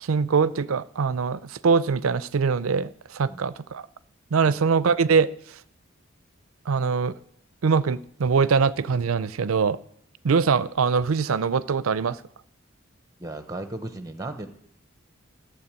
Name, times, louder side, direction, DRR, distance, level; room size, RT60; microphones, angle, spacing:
voice 1, 0.0-3.8 4.3-5.3 6.7-7.1 7.6-9.8 10.2-12.2, right 5 dB, 90° right, 17 dB, 0.5 m, -23 dB
voice 2, 13.2-14.5, right 2 dB, 15° right, 8 dB, 0.9 m, -36 dB
12.5 x 7.4 x 8.7 m, 0.70 s
head